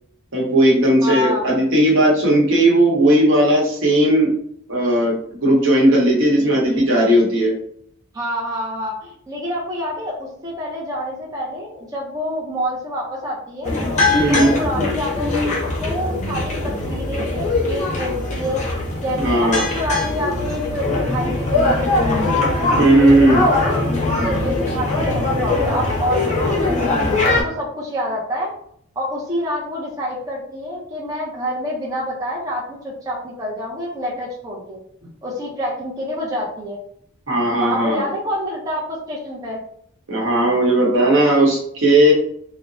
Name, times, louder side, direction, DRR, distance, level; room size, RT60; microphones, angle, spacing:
voice 1, 0.3-4.3 4.7-5.2 5.4-7.5 14.2-14.5 19.2-19.7 22.8-23.4 37.3-38.1 40.1-42.1, right 1 dB, 65° right, -2 dB, 0.9 m, -16 dB
voice 2, 1.0-1.5 6.3-6.8 8.1-13.7 14.3-15.4 15.8-18.6 19.0-22.3 22.6-23.9 24.2-26.8 27.3-28.5 29.0-36.8 37.5-39.6, equal, 15° right, -5 dB, 0.5 m, -27 dB
sound 1, 13.6-27.4, left 2 dB, 35° left, 0.8 m, -21 dB
2.9 x 2.0 x 2.5 m, 0.66 s
head